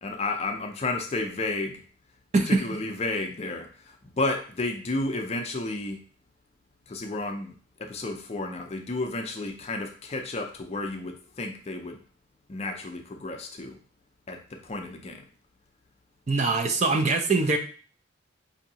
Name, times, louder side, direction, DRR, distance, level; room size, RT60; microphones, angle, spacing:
voice 1, 0.0-1.8 2.5-6.0 6.9-7.5 7.8-12.0 12.5-13.8 14.3-15.2, left 2 dB, 30° left, 4 dB, 0.4 m, -32 dB
voice 2, 16.3-17.6, right 3 dB, 35° right, 5 dB, 0.4 m, -23 dB
5.0 x 2.6 x 2.8 m, 0.41 s
head